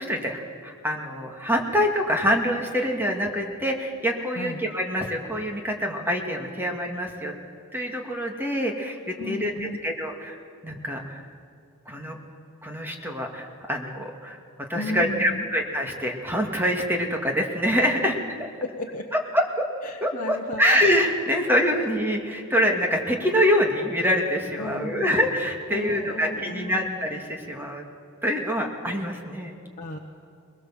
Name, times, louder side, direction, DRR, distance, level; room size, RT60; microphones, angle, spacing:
voice 1, 0.0-7.3 7.7-9.5 9.8-10.4 10.6-11.3 11.9-12.2 12.6-14.4 14.7-18.2 19.3-19.5 20.0-27.8 28.2-29.6, equal, 10° right, 1 dB, 2.3 m, -25 dB
voice 2, 9.2-9.8 14.7-15.5 18.6-19.0 19.8-20.8 24.6-25.2 25.7-26.9 29.8-30.0, left 2 dB, 35° left, -1 dB, 1.2 m, -34 dB
21.5 x 21.5 x 7.5 m, 2.3 s
head